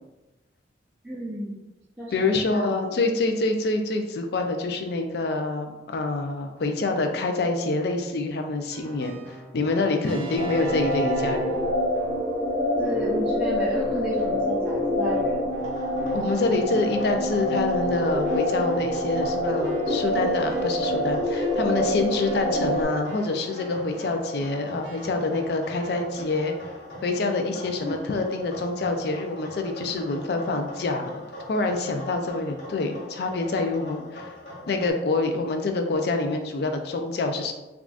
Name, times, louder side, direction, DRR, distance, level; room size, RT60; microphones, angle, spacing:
voice 1, 1.0-1.6 2.0-2.8 12.8-15.4 27.8-28.0, equal, 10° right, -8 dB, 0.4 m, -32 dB
voice 2, 2.1-9.2 9.5-11.6 16.1-26.5 27.0-31.2 31.5-34.3 34.7-37.5, left 3 dB, 60° left, 5 dB, 0.4 m, -26 dB
Keyboard (musical), 8.7-12.4 12.8-13.3 13.7-26.2, right 1 dB, 70° right, 0.6 m, -42 dB
sound 1, 10.4-22.8, equal, 10° left, 1.0 m, -26 dB
sound 2, 15.6-34.9, left 1 dB, 90° left, 1.3 m, -41 dB
3.6 x 2.3 x 2.4 m, 1.1 s
head